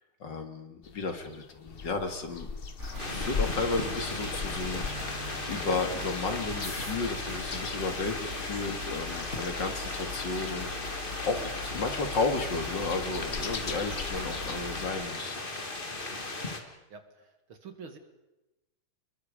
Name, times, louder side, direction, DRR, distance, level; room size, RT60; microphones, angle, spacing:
voice 1, 0.2-2.5 3.1-15.4, left 3 dB, 60° left, 6 dB, 2.7 m, -33 dB
sound 1, 0.8-14.6, left 5 dB, 40° left, 0.8 m, -41 dB
sound 2, 2.8-14.9, left 3 dB, 30° right, 5.7 m, -40 dB
sound 3, 3.0-16.6, left 2 dB, 25° left, 2.1 m, -37 dB
voice 2, 16.9-18.0, right 5 dB, 75° right, 7 dB, 3.0 m, -47 dB
29.5 x 21.5 x 5.1 m, 1.0 s
omnidirectional pair, 2.3 m